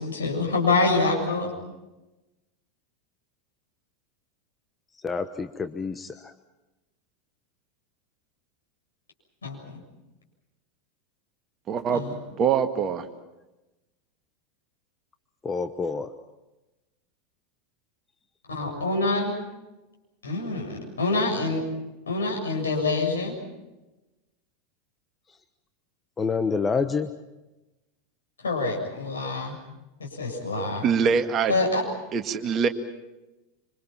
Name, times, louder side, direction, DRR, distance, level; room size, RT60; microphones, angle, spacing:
voice 1, 0.0-1.5 9.4-9.8 11.9-12.1 18.5-19.3 20.2-21.6 22.1-23.3 28.4-29.6 30.0-30.9 31.5-31.8, left 3 dB, 75° left, 0 dB, 7.2 m, -26 dB
voice 2, 5.0-6.3 15.4-16.1 26.2-27.1, left 5 dB, 20° left, 9 dB, 1.1 m, -27 dB
voice 3, 11.7-12.0 12.4-13.1 30.8-31.6 32.1-32.7, right 6 dB, 35° right, 7 dB, 1.9 m, -23 dB
26.5 x 26.5 x 5.9 m, 1.0 s
figure-of-eight pair, 85°, 0 cm